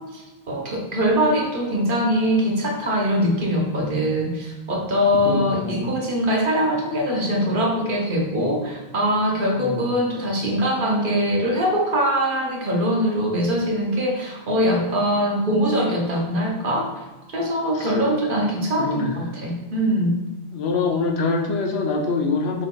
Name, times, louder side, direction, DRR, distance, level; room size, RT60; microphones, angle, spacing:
voice 1, 0.0-20.1, equal, 55° right, 0 dB, 1.0 m, -22 dB
voice 2, 5.2-5.9 9.6-9.9 17.7-17.9 18.8-19.3 20.5-22.7, left 4 dB, 85° left, 2 dB, 0.9 m, -25 dB
6.0 x 3.7 x 2.2 m, 1.1 s
omnidirectional pair, 1.1 m